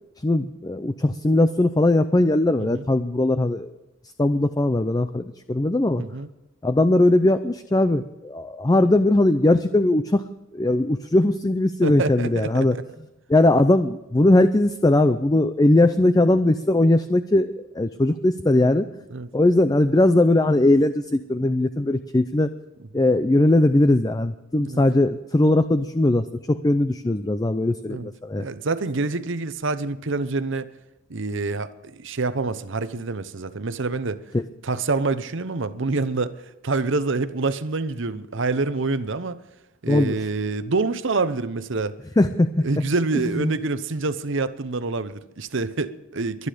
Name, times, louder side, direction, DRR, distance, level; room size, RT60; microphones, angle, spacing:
voice 1, 0.2-3.7 4.2-6.0 6.6-10.2 10.5-12.8 13.3-18.9 19.3-22.5 22.9-28.4 34.3-34.4 39.9-40.2 42.2-42.6 43.2-43.5, left 1 dB, 20° left, 11 dB, 0.5 m, -19 dB
voice 2, 6.0-6.3 11.8-12.8 19.1-19.3 22.9-23.0 24.6-24.8 27.9-28.1 28.4-30.7 31.1-34.2 34.6-36.3 36.6-39.4 39.8-42.0 42.6-46.5, right 3 dB, 65° right, 13 dB, 0.8 m, -26 dB
23.5 x 9.7 x 5.1 m, 1.0 s
head